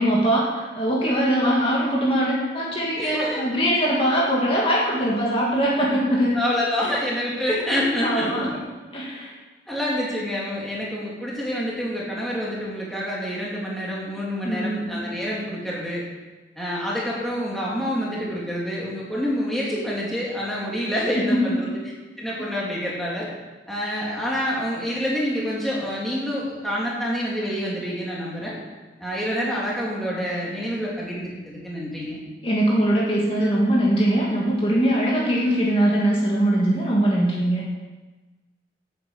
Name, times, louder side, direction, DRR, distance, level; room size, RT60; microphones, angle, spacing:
voice 1, 0.0-6.4 8.0-8.5 8.9-9.3 14.4-15.0 21.1-21.5 21.8-21.9 32.4-37.6, right 1 dB, 30° left, -4 dB, 2.3 m, -21 dB
voice 2, 2.9-3.4 6.3-8.5 9.7-16.0 16.6-21.8 22.2-23.3 23.7-28.6 29.0-32.2, equal, ahead, -6 dB, 2.8 m, -27 dB
9.4 x 8.8 x 8.0 m, 1.3 s
head